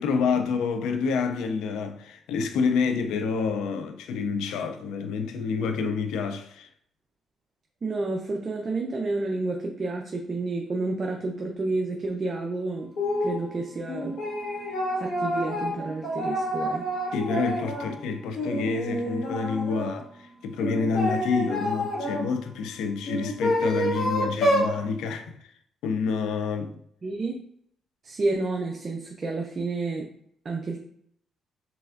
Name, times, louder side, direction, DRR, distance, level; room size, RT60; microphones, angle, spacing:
voice 1, 0.0-6.7 17.1-25.5 25.8-26.8, left 5 dB, 90° left, 0.3 m, -28 dB
voice 2, 7.8-12.9 13.2-14.2 15.0-16.9 27.0-27.4 28.0-30.1 30.4-30.8, right 3 dB, 40° right, 0.5 m, -30 dB
sound 1, 13.0-13.4 13.9-17.9 18.3-19.9 20.6-22.2 23.0-24.7, equal, 70° left, 1.5 m, -28 dB
4.9 x 3.3 x 2.4 m
cardioid pair, 90°, 0 cm